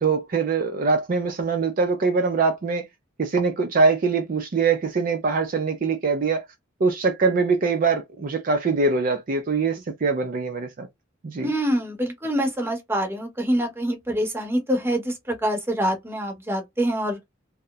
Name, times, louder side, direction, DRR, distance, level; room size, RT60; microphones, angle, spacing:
voice 1, 0.0-2.9 3.2-6.5 6.8-10.9 11.2-11.5, right 4 dB, 45° right, 0.4 m, -23 dB
voice 2, 11.4-17.2, equal, 10° right, 0.8 m, -25 dB
2.8 x 2.0 x 2.3 m
head